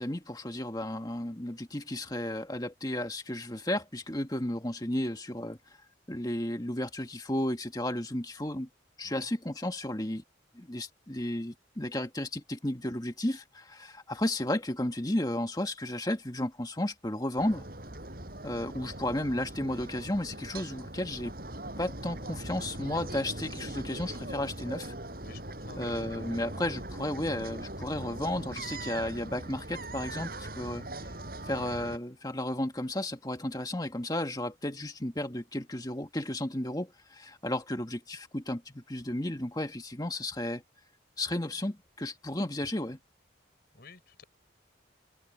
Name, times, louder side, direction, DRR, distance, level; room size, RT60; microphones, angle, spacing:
voice 1, 0.0-5.6 6.1-8.7 9.0-10.2 10.5-17.6 18.4-21.3 21.8-24.9 25.8-30.8 31.4-40.6 41.2-43.0, left 1 dB, 20° left, 1.8 m, -33 dB
sound 1, 17.4-32.0, right 1 dB, 50° right, 5.9 m, -41 dB
voice 2, 25.2-26.0 43.7-44.2, left 3 dB, 55° left, 5.8 m, -52 dB
head